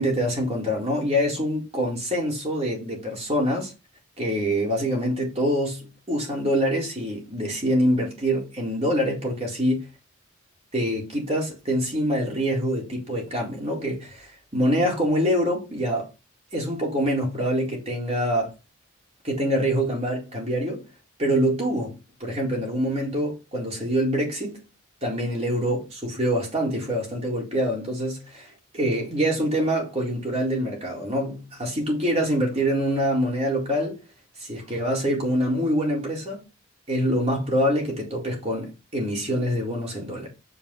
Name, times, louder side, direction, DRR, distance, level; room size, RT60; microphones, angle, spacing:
voice 1, 0.0-3.7 4.2-9.9 10.7-16.1 16.5-18.5 19.2-20.8 21.2-21.9 22.2-24.6 25.0-34.0 34.4-36.4 36.9-40.3, equal, 30° right, 4.2 m, -25 dB
8.2 x 7.0 x 4.2 m
head